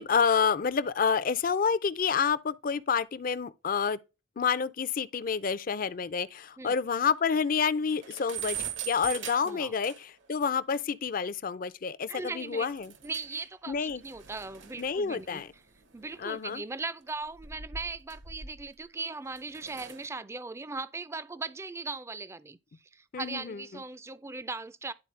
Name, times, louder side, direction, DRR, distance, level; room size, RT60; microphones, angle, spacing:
voice 1, 0.0-4.0 4.4-8.6 8.9-12.9 13.7-14.0 14.8-15.5 16.2-16.6 23.1-23.6, left 6 dB, 45° left, 0.4 m, -28 dB
sound 1, 5.9-6.0 6.4-6.5 6.8-6.9 7.2-7.3 7.7-10.3 10.7-10.8 12.7-13.4 13.7-16.4 17.2-18.8 19.3-20.1, right 8 dB, 75° right, 1.2 m, -42 dB
voice 2, 9.4-9.7 12.1-12.7 13.0-15.4 15.9-22.6 22.9-24.9, right 3 dB, 15° right, 0.4 m, -39 dB
10.5 x 4.2 x 3.2 m
head